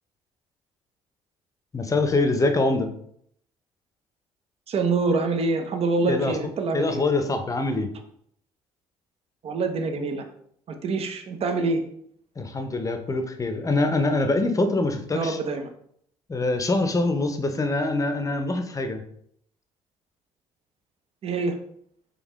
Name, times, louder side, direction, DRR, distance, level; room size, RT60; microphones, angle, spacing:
voice 1, 1.7-2.9 6.0-6.3 6.7-7.9 12.4-15.4 16.3-19.0, left 2 dB, 25° left, 7 dB, 0.7 m, -24 dB
voice 2, 4.7-7.0 9.4-10.2 10.7-11.8 15.1-15.7 21.2-21.6, right 3 dB, 45° right, 6 dB, 0.7 m, -25 dB
3.9 x 3.2 x 3.1 m, 0.68 s
hypercardioid pair, 55°, 14 cm